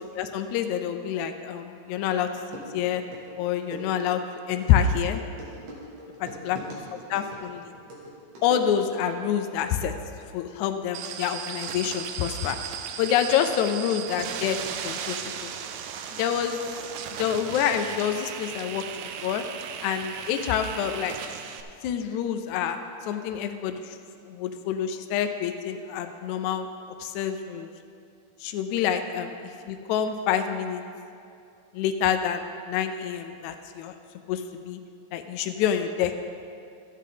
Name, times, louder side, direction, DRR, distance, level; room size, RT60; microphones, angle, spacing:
voice 1, 0.2-2.3 2.7-3.0 3.4-4.2 4.5-5.2 6.2-6.6 7.1-7.6 8.4-9.9 10.3-12.6 13.0-14.6 14.8-15.2 15.4-15.5 16.1-16.6 17.1-19.4 19.8-21.2 21.8-24.0 24.3-26.7 27.0-27.7 28.4-29.4 29.7-30.8 31.7-33.9 34.3-34.8 35.1-36.1, left 9 dB, 80° left, 6 dB, 1.9 m, -27 dB
sound 1, 1.9-2.0 2.4-9.1, right 1 dB, 65° right, 3.0 m, -42 dB
sound 2, 10.9-21.6, right 8 dB, 80° right, 1.9 m, -36 dB
13.5 x 8.3 x 3.8 m, 2.5 s
omnidirectional pair, 3.5 m